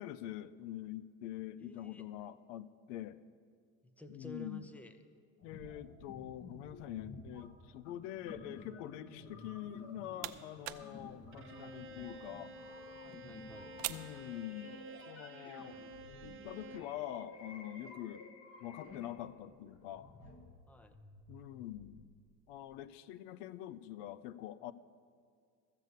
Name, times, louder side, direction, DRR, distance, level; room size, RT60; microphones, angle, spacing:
voice 1, 0.0-3.2 4.1-4.7 5.4-12.6 13.9-14.8 15.1-15.8 16.2-18.2 18.6-20.1 21.3-22.1 22.5-24.7, left 13 dB, 85° left, 17 dB, 0.6 m, -45 dB
voice 2, 1.6-2.0 3.8-5.0 13.0-13.7 20.7-21.0, equal, 5° left, 9 dB, 0.6 m, -52 dB
sound 1, 5.4-22.1 22.7-22.8, left 3 dB, 40° left, 1.4 m, -53 dB
sound 2, 9.7-15.0, right 17 dB, 65° right, 0.6 m, -48 dB
Bowed string instrument, 11.3-17.0, right 2 dB, 35° right, 1.0 m, -51 dB
14.0 x 6.7 x 8.0 m, 2.1 s
supercardioid pair, 110°, 37 cm